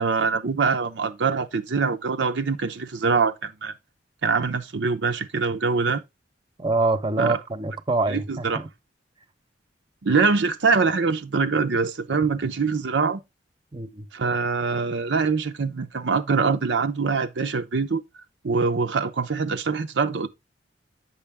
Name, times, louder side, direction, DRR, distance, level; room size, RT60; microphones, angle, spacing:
voice 1, 0.0-3.7 4.2-6.0 7.2-7.4 8.1-8.6 10.0-13.2 14.1-18.0 18.4-20.3, right 4 dB, 75° right, 0.7 m, -24 dB
voice 2, 6.6-8.7 13.7-14.0, right 3 dB, 25° right, 0.8 m, -25 dB
8.6 x 6.2 x 3.4 m
head